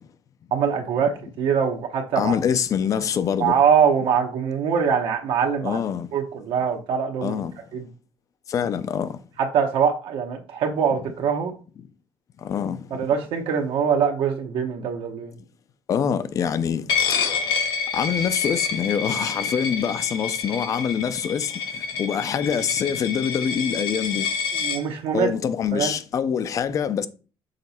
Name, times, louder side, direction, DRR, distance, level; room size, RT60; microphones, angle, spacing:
voice 1, 0.5-2.4 3.4-5.8 6.1-7.4 7.7-7.9 9.5-11.5 12.9-15.3 24.5-25.3 25.7-25.9, right 7 dB, 70° right, 1.0 m, -23 dB
voice 2, 2.2-3.5 5.6-6.1 7.2-7.5 8.5-9.2 12.4-12.8 15.9-16.8 17.9-21.5 22.0-24.3 25.1-27.1, left 8 dB, 35° left, 0.4 m, -25 dB
Coin (dropping), 16.9-24.8, left 6 dB, 50° left, 1.1 m, -28 dB
6.5 x 3.9 x 4.2 m
cardioid pair, 170°, 9 cm